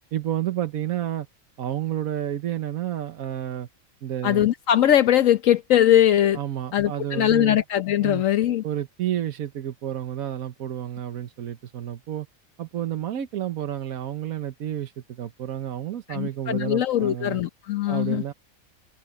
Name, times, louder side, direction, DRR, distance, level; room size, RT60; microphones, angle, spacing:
voice 1, 0.1-1.3 1.6-3.7 4.0-4.5 6.3-7.6 8.0-8.2 8.6-12.3 12.6-17.4 17.9-18.3, right 11 dB, 85° right, 1.4 m, -30 dB
voice 2, 4.2-6.4 6.7-8.6 16.1-18.2, left 11 dB, 70° left, 1.1 m, -21 dB
omnidirectional pair, 1.4 m